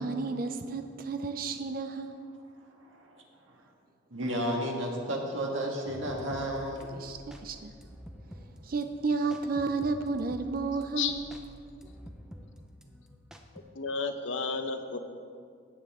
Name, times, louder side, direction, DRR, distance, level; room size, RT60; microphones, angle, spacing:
voice 1, 0.0-2.1 7.0-7.7 8.6-11.4, right 4 dB, 45° right, 7 dB, 0.5 m, -32 dB
voice 2, 2.6-3.6 4.1-6.9, equal, 80° right, 0 dB, 1.8 m, -33 dB
sound 1, 5.9-13.6, equal, 5° right, 0.6 m, -49 dB
voice 3, 13.7-15.0, left 5 dB, 80° left, 7 dB, 0.8 m, -32 dB
16.0 x 7.8 x 3.6 m, 2.2 s
head